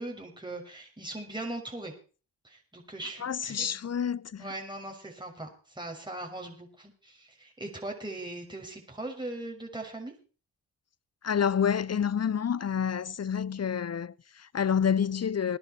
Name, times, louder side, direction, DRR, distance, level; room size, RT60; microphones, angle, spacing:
voice 1, 0.0-1.9 2.4-3.7 4.4-10.1, right 2 dB, 10° right, 6.3 m, -40 dB
voice 2, 3.2-4.5 11.2-15.6, left 7 dB, 40° left, 0.8 m, -28 dB
20.5 x 10.5 x 4.5 m
supercardioid pair, 45°, 39 cm